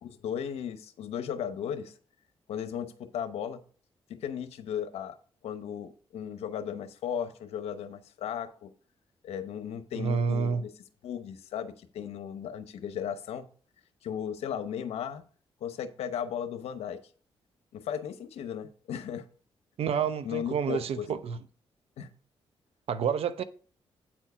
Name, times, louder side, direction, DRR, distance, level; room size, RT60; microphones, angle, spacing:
voice 1, 0.0-1.9 2.5-3.6 4.1-5.1 5.4-8.7 9.2-10.7 11.0-13.4 14.0-15.2 15.6-17.0 17.7-19.3 20.2-21.2 22.0-22.1, left 8 dB, 85° left, 0.8 m, -36 dB
voice 2, 9.9-10.6 19.8-21.4 22.9-23.4, right 6 dB, 75° right, 0.7 m, -29 dB
8.6 x 4.5 x 5.5 m
cardioid pair, 65°, 10 cm